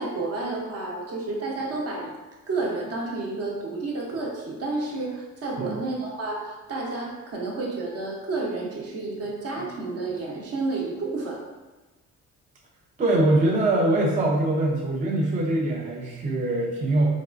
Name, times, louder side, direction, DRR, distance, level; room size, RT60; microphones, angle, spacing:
voice 1, 0.0-2.1 2.5-11.4, right 3 dB, 55° right, -2 dB, 0.8 m, -30 dB
voice 2, 13.0-17.1, right 1 dB, 25° right, -2 dB, 0.4 m, -23 dB
3.4 x 2.4 x 2.4 m, 1.2 s
cardioid pair, 90°, 30 cm